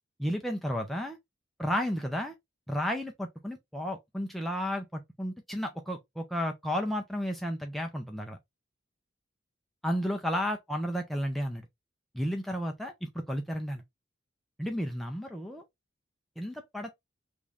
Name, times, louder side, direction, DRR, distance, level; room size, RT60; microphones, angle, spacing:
voice 1, 0.2-1.2 1.6-2.3 2.7-8.4 9.8-11.7 12.1-13.8 14.6-15.6 16.4-16.9, equal, ahead, 0.4 m, -32 dB
3.1 x 2.6 x 3.4 m
head